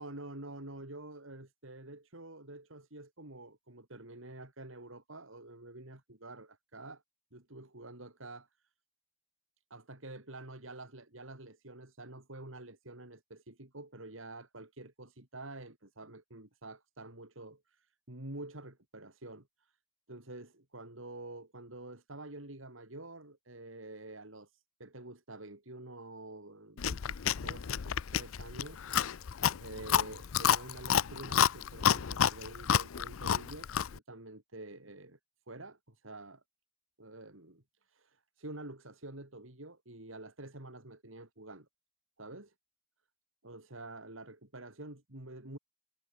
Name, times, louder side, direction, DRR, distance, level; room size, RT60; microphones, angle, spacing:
voice 1, 0.0-7.0 7.3-8.5 9.7-19.7 20.1-35.2 35.5-36.4 37.0-37.6 37.9-41.7 42.2-42.5 43.4-45.6, right 2 dB, 80° right, 4.1 m, -48 dB
Chewing mastication, 26.8-34.0, left 8 dB, 90° left, 0.5 m, -30 dB
head